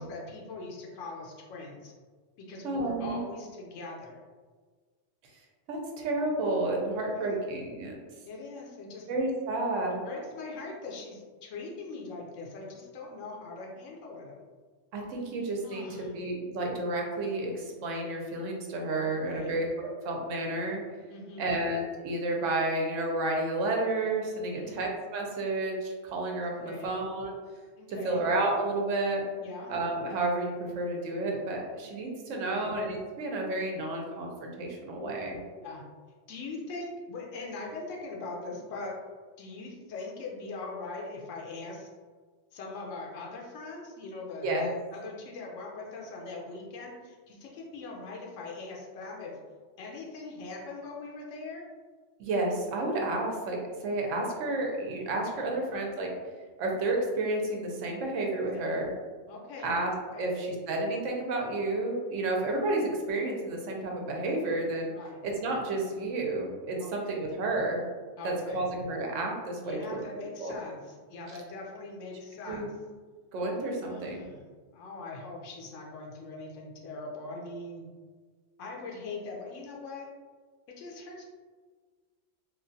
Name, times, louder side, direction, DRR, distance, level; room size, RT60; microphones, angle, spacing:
voice 1, 0.0-1.9 2.4-4.2 7.0-7.4 8.2-9.1 10.0-14.3 15.6-16.1 19.0-19.5 21.1-21.5 24.4-24.8 26.6-26.9 27.8-28.2 29.4-29.7 32.3-32.7 35.0-35.1 35.6-35.8 36.3-39.0 39.4-41.9 42.5-49.4 49.8-51.7 55.4-55.6 58.5-58.6 59.3-59.8 60.1-60.3 64.9-65.2 66.8-67.3 68.2-68.7 69.6-72.7 73.8-74.5 74.7-77.8 78.6-80.1 80.8-81.2, left 3 dB, 80° left, -1 dB, 0.9 m, -41 dB
voice 2, 2.6-3.2 5.7-8.0 9.1-10.0 14.9-20.8 21.4-27.3 27.9-29.2 29.7-35.4 44.4-44.7 52.2-56.1 56.6-58.9 59.6-59.9 60.2-64.9 65.2-67.8 68.2-70.0 70.4-70.6 72.5-72.7 73.3-74.3, right 2 dB, 85° right, 0 dB, 1.0 m, -31 dB
3.1 x 2.3 x 2.6 m, 1.5 s
omnidirectional pair, 1.3 m